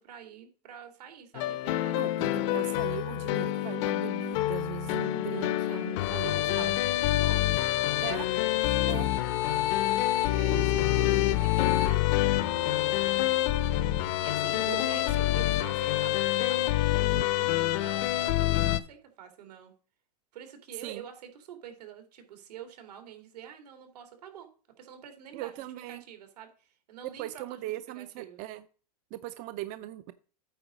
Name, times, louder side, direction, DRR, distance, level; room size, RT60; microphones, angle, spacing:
voice 1, 0.0-2.0 5.2-6.8 7.1-8.3 8.6-8.8 9.1-13.2 14.2-19.7 20.3-24.5 24.8-25.5 25.9-27.6 27.9-28.4, right 9 dB, 85° right, 7 dB, 2.5 m, -47 dB
sound 1, 1.4-18.8, left 14 dB, 50° left, 0.7 m, -27 dB
voice 2, 2.0-6.8 8.0-8.3 8.9-9.1 14.7-15.0 17.1-17.3 20.8-21.0 25.3-26.0 27.2-28.6 29.1-30.1, right 15 dB, 40° right, 12 dB, 0.5 m, -39 dB
9.0 x 3.9 x 6.2 m, 0.39 s
supercardioid pair, 145°, 20 cm